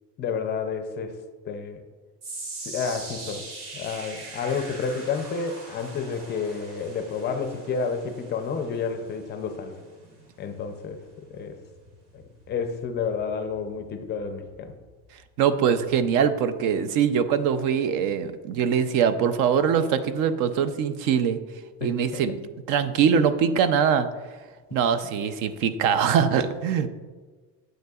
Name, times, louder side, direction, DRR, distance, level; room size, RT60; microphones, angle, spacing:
voice 1, 0.2-1.2 1.5-1.8 2.7-3.5 3.7-9.8 10.4-11.6 12.1-12.2 12.5-14.7 21.8-22.2 26.8-26.9, left 5 dB, 30° left, 7 dB, 0.5 m, -30 dB
sound 1, 2.2-14.5 14.8-15.2 15.8-15.9, right 2 dB, 85° right, 2.1 m, -43 dB
voice 2, 15.4-21.4 21.8-22.4 22.7-24.1 24.7-26.9, right 7 dB, 55° right, 11 dB, 0.6 m, -22 dB
9.3 x 7.8 x 2.3 m, 1.4 s
cardioid pair, 165°, 38 cm